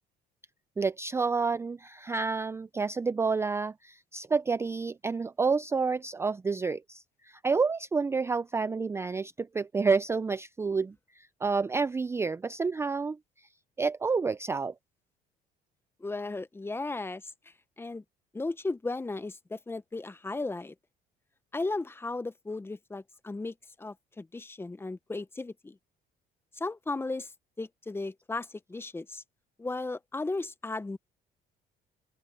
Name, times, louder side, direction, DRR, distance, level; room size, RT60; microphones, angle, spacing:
voice 1, 0.8-13.2 13.8-14.7, right 4 dB, 15° right, 0.4 m, -29 dB
voice 2, 16.0-17.2 17.8-18.0 18.3-20.7 21.5-25.8 26.5-27.3 27.6-29.2 29.6-31.0, left 3 dB, 15° left, 0.8 m, -35 dB
open air
cardioid pair, 110°, 17 cm